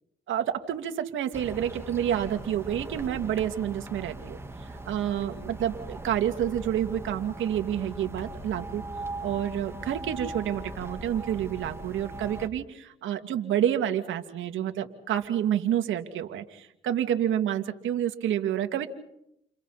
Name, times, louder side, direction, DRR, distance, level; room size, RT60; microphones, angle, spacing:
voice 1, 0.3-4.4 4.9-8.8 9.2-18.9, right 10 dB, 80° right, 6 dB, 2.5 m, -29 dB
sound 1, 1.3-12.5, right 2 dB, 15° right, 3.3 m, -40 dB
30.0 x 29.5 x 4.3 m, 0.78 s
cardioid pair, 90°, 20 cm